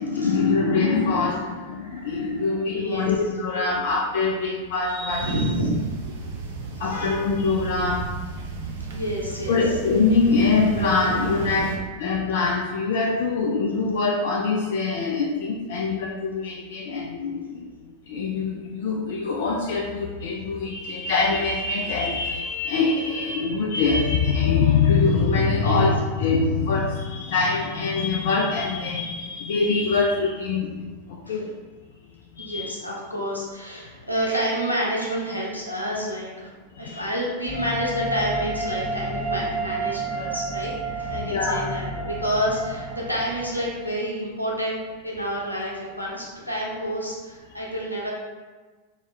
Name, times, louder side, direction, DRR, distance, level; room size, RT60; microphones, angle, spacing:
voice 1, 0.0-5.4 6.2-6.3 6.8-8.1 9.5-31.6 32.4-32.7 36.7-37.1 41.2-41.6, left 4 dB, 55° left, -1 dB, 0.3 m, -24 dB
voice 2, 2.7-3.1 5.2-5.7 6.8-7.1 8.9-9.6 25.6-25.8 31.3-31.4 32.4-36.5 36.8-48.1, equal, 85° left, -4 dB, 0.8 m, -29 dB
sound 1, 5.1-11.8, right 4 dB, 55° right, 0.5 m, -33 dB
sound 2, 37.5-43.9, right 2 dB, 25° right, 1.4 m, -30 dB
3.0 x 2.8 x 3.3 m, 1.3 s
figure-of-eight pair, 90°, 0 cm